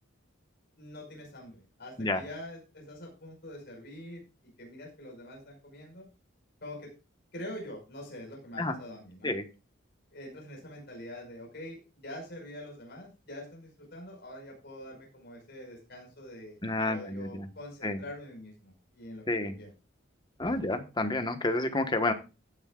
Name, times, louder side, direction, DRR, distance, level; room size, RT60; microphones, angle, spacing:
voice 1, 0.8-6.1 6.6-6.9 7.3-9.3 10.1-16.6 16.9-19.7, left 1 dB, 50° left, 0 dB, 5.3 m, -45 dB
voice 2, 16.6-17.5 17.8-18.0 19.3-19.5 20.4-22.1, left 2 dB, 20° left, 7 dB, 1.3 m, -29 dB
16.0 x 9.7 x 2.4 m, 0.30 s
head